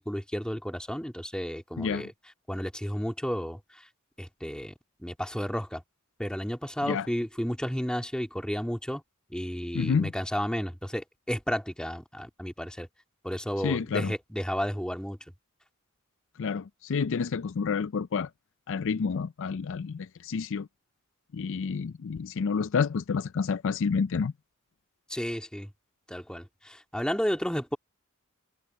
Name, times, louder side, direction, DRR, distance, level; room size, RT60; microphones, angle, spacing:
voice 1, 0.0-2.1 2.5-3.6 4.2-4.7 5.0-5.8 6.2-9.0 9.3-12.9 13.2-15.2 25.1-25.7 26.1-27.8, equal, 5° left, 2.3 m, -32 dB
voice 2, 1.8-2.1 6.9-7.1 9.7-10.1 13.6-14.1 16.4-18.3 18.7-20.7 21.3-24.3, left 5 dB, 60° left, 0.4 m, -29 dB
head